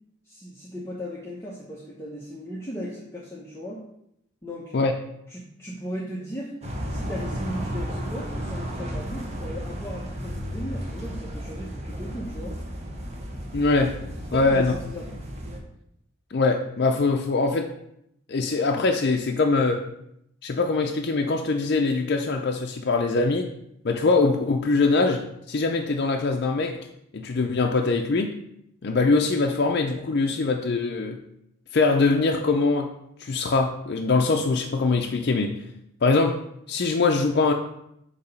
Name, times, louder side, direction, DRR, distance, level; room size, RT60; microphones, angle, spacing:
voice 1, 0.3-3.8 4.4-4.7 5.3-6.5 6.9-12.5 14.3-15.2, equal, 10° left, -5 dB, 0.8 m, -37 dB
sound 1, 6.6-15.6, equal, 30° right, 1.0 m, -33 dB
voice 2, 13.5-14.0 14.3-14.7 16.3-17.7 18.3-19.8 20.4-23.5 23.8-26.8 27.1-28.3 28.8-31.2 31.7-32.9 33.2-35.5 36.0-36.3 36.7-37.5, left 3 dB, 50° left, 2 dB, 0.5 m, -22 dB
8.2 x 2.9 x 5.5 m, 0.78 s
head